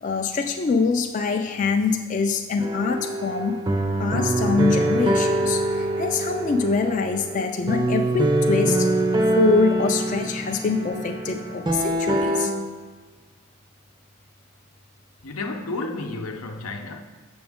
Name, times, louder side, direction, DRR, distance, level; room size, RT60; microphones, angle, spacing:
voice 1, 0.0-3.6 4.0-8.9 9.4-12.5, left 4 dB, 35° left, 0.3 m, -24 dB
sound 1, 2.6-12.5, right 1 dB, 20° right, 0.5 m, -24 dB
voice 2, 15.2-17.0, left 2 dB, 90° left, 0.7 m, -31 dB
6.9 x 6.0 x 3.6 m
head